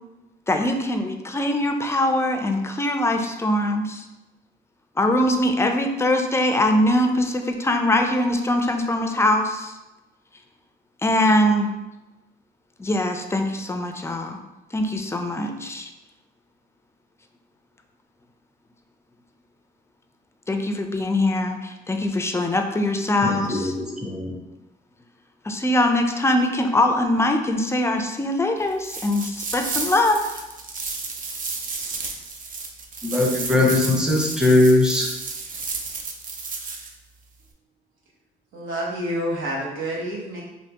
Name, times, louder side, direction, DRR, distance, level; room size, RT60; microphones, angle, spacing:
voice 1, 0.5-4.0 5.0-9.7 11.0-11.7 12.8-14.4 14.7-15.9 20.5-23.7 25.4-30.4, left 1 dB, 15° left, 5 dB, 0.4 m, -22 dB
voice 2, 23.2-24.4 33.0-35.1, left 2 dB, 5° right, -2 dB, 0.7 m, -20 dB
sound 1, 28.8-36.9, right 4 dB, 45° right, 0.5 m, -32 dB
voice 3, 38.5-40.4, right 1 dB, 90° right, -4 dB, 0.9 m, -28 dB
3.3 x 2.6 x 2.8 m, 1.0 s
cardioid pair, 90°, 20 cm